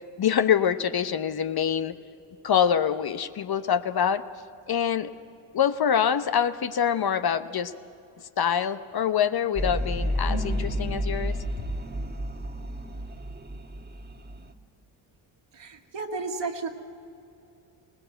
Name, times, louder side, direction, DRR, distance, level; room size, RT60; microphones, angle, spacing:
voice 1, 0.2-1.9 2.4-4.2 4.7-5.1 5.5-7.7 8.4-11.3, left 8 dB, 50° left, 11 dB, 0.9 m, -25 dB
sound 1, 9.6-14.5, equal, 20° right, 1.5 m, -31 dB
voice 2, 15.5-16.7, right 4 dB, 55° right, 1 dB, 2.1 m, -33 dB
21.0 x 18.5 x 8.0 m, 2.7 s
supercardioid pair, 55°, 50 cm